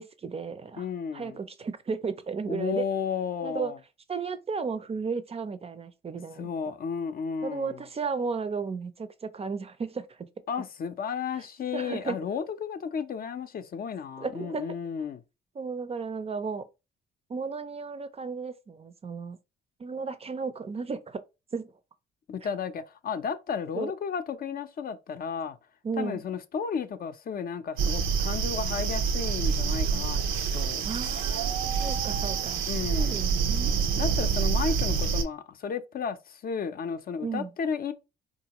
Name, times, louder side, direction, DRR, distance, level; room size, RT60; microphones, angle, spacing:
voice 1, 0.0-0.9 1.1-2.8 3.4-3.7 4.1-6.5 7.4-10.3 11.7-12.2 14.2-14.8 15.6-16.7 17.3-19.4 19.8-21.2 21.5-21.7 23.7-23.9 25.8-26.2 30.8-32.7 33.0-33.9 37.2-37.5, right 5 dB, 30° right, 0.4 m, -34 dB
voice 2, 0.8-1.4 2.5-3.8 6.4-7.8 10.5-15.2 22.3-25.6 26.0-30.2 30.5-30.8 32.7-33.3 34.0-37.9, left 6 dB, 50° left, 0.5 m, -33 dB
sound 1, 27.8-35.2, right 6 dB, 85° right, 0.6 m, -27 dB
3.7 x 2.5 x 2.9 m
cardioid pair, 90°, 20 cm